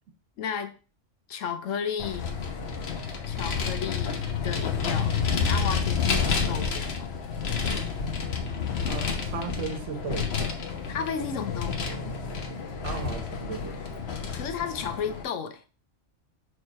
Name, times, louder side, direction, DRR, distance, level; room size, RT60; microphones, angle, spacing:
voice 1, 0.4-0.7 1.3-2.3 3.3-5.2 5.5-7.1 10.9-12.2 14.3-15.6, left 7 dB, 85° left, 1.1 m, -33 dB
Vehicle, 2.0-15.2, left 5 dB, 60° left, 1.1 m, -29 dB
voice 2, 8.9-10.7 12.8-14.0, right 6 dB, 70° right, 1.2 m, -36 dB
6.5 x 3.3 x 4.3 m
omnidirectional pair, 1.3 m